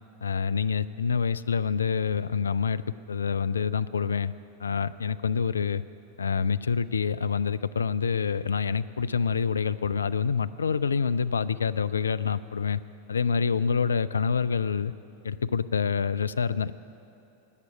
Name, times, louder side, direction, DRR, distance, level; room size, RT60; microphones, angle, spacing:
voice 1, 0.2-2.8 3.1-4.3 4.6-5.8 6.2-12.8 13.1-14.9 15.2-16.7, left 6 dB, 70° left, 15 dB, 0.3 m, -27 dB
14.0 x 9.7 x 8.5 m, 2.9 s
figure-of-eight pair, 90°, 0 cm